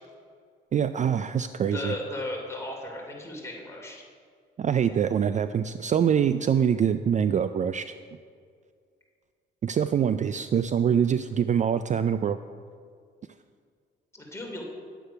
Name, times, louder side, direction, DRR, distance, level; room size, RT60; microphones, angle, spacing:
voice 1, 0.7-1.9 4.6-7.9 9.6-12.4, right 8 dB, 40° right, 11 dB, 0.4 m, -24 dB
voice 2, 1.7-4.0 14.1-14.6, left 1 dB, 15° left, -2 dB, 2.8 m, -35 dB
10.0 x 7.9 x 5.7 m, 2.1 s
cardioid pair, 90°, 20 cm